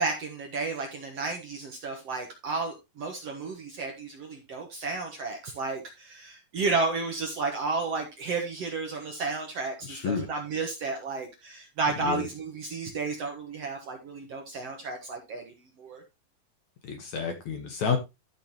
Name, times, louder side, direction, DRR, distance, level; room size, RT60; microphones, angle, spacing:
voice 1, 0.0-16.0, right 3 dB, 55° right, 2 dB, 2.0 m, -32 dB
voice 2, 9.9-10.3 12.0-12.2 16.8-18.0, left 6 dB, 60° left, 5 dB, 2.3 m, -29 dB
13.0 x 6.4 x 3.0 m, 0.23 s
omnidirectional pair, 4.4 m